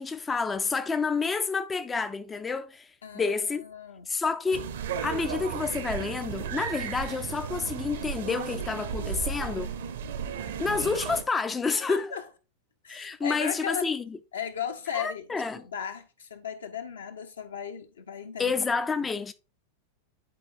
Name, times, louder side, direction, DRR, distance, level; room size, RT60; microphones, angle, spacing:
voice 1, 0.0-3.6 4.1-4.7 5.0-9.7 10.6-12.1 12.9-14.0 14.9-15.7 18.4-19.3, left 4 dB, 15° left, 0.4 m, -29 dB
voice 2, 3.0-3.3 3.6-4.1 11.6-12.2 12.8-13.9 14.3-15.3 15.6-18.5, left 7 dB, 70° left, 0.9 m, -36 dB
sound 1, 4.5-11.2, right 7 dB, 60° right, 0.7 m, -34 dB
10.5 x 4.5 x 2.6 m
figure-of-eight pair, 90°, 0 cm